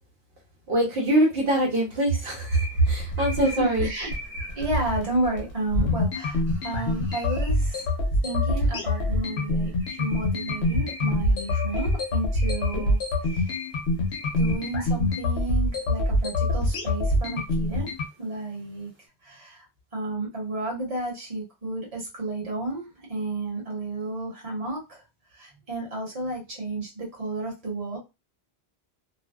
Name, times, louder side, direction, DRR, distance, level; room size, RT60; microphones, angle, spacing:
voice 1, 0.7-3.9, right 1 dB, 65° right, -3 dB, 1.0 m, -23 dB
sound 1, 2.5-19.0, left 1 dB, 10° right, 0.8 m, -46 dB
sound 2, 2.7-18.1, left 2 dB, 80° left, 0.9 m, -25 dB
voice 2, 3.4-4.1 4.5-7.9 8.2-13.0 13.3-13.6 14.4-17.9 18.2-18.9 19.2-19.7 19.9-25.0 25.3-28.0, right 2 dB, 35° right, -3 dB, 1.1 m, -32 dB
2.5 x 2.1 x 2.2 m, 0.24 s
omnidirectional pair, 1.1 m